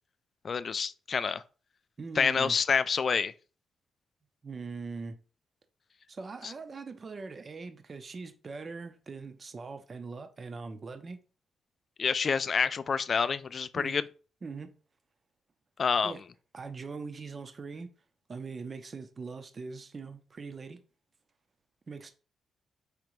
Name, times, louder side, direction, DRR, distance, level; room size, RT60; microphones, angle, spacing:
voice 1, 0.4-1.4 2.2-3.3 6.4-6.5 12.0-14.0 15.8-16.1, left 5 dB, 45° left, 0.3 m, -28 dB
voice 2, 2.0-2.5 4.4-5.2 6.1-11.2 13.7-14.0 14.4-14.7 16.0-16.2 16.5-17.9 18.3-20.8 21.9-22.1, right 4 dB, 35° right, 0.6 m, -41 dB
5.0 x 3.3 x 3.1 m
cardioid pair, 110°, 0 cm